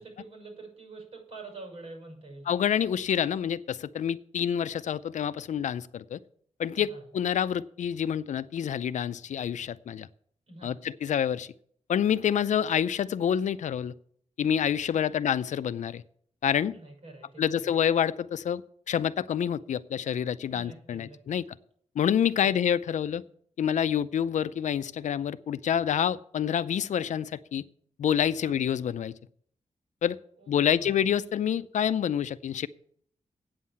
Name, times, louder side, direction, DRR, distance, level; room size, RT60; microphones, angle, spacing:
voice 1, 0.0-2.5 6.7-7.1 10.5-10.8 15.0-15.3 16.7-17.7 20.5-21.4 22.4-22.6 28.4-28.6 30.4-31.0, right 3 dB, 65° right, 1 dB, 6.4 m, -47 dB
voice 2, 2.5-6.2 6.6-10.1 10.6-11.5 11.9-13.9 14.4-16.0 16.4-16.7 17.4-18.6 18.9-21.4 22.0-23.2 23.6-27.7 28.0-29.1 30.0-30.2 30.5-32.7, left 9 dB, 90° left, 14 dB, 0.5 m, -27 dB
8.7 x 7.4 x 8.3 m, 0.63 s
wide cardioid pair, 165°, 12 cm